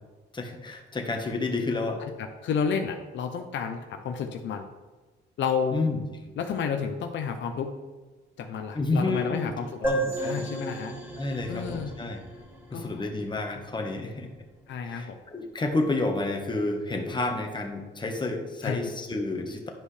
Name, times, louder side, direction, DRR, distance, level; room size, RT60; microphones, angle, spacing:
voice 1, 0.3-2.0 5.7-6.0 8.7-9.5 9.8-10.5 11.1-12.2 12.7-14.3 14.8-19.7, left 2 dB, 25° left, 3 dB, 1.3 m, -30 dB
voice 2, 2.4-3.8 4.0-4.7 5.4-5.8 6.4-7.7 8.4-9.9 10.2-10.9 11.5-11.9 12.7-12.9 14.7-15.1 18.6-18.8, left 6 dB, 70° left, 5 dB, 0.7 m, -30 dB
sound 1, 9.8-13.4, right 2 dB, 10° right, 2.5 m, -34 dB
10.5 x 5.4 x 3.3 m, 1.3 s
cardioid pair, 90°, 20 cm